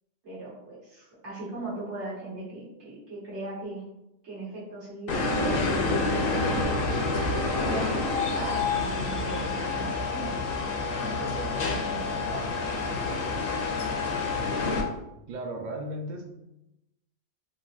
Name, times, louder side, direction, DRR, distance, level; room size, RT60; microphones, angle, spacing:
voice 1, 0.2-3.8 4.2-6.8 7.6-10.4 11.0-13.1, right 2 dB, 75° right, -8 dB, 1.7 m, -38 dB
sound 1, 5.1-14.8, left 3 dB, 60° left, 0.7 m, -28 dB
voice 2, 15.3-16.3, right 1 dB, 60° right, 2 dB, 0.5 m, -35 dB
3.9 x 2.5 x 2.4 m, 0.89 s
omnidirectional pair, 1.2 m